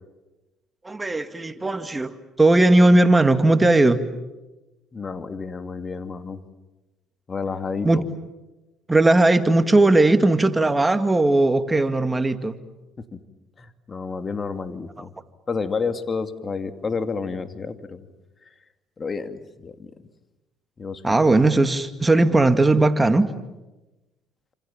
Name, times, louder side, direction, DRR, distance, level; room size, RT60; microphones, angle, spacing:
voice 1, 0.8-4.0 7.8-8.1 8.9-12.6 21.0-23.3, right 2 dB, 15° right, 9 dB, 2.3 m, -18 dB
voice 2, 4.9-6.4 7.3-8.1 13.0-13.2 13.6-15.1 15.5-18.1 19.0-19.9 20.8-21.0, left 4 dB, 35° left, 8 dB, 2.7 m, -30 dB
29.0 x 27.0 x 7.5 m, 1.1 s
hypercardioid pair, 65°, 0 cm